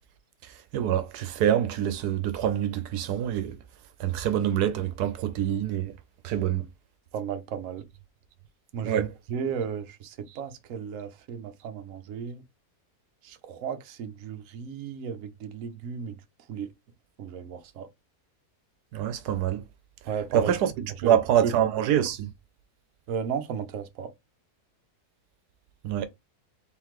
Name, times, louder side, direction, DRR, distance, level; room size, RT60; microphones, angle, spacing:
voice 1, 0.7-3.5 4.0-5.9 6.2-6.6 8.9-9.1 18.9-19.6 20.3-20.6 21.0-22.3 25.8-26.1, right 10 dB, 85° right, 1.2 m, -25 dB
voice 2, 7.1-7.8 8.7-12.4 13.2-16.1 16.5-16.7 17.2-17.9 20.0-21.2 21.4-21.5 23.1-24.1, right 7 dB, 65° right, 1.0 m, -34 dB
4.0 x 3.8 x 3.0 m
omnidirectional pair, 1.6 m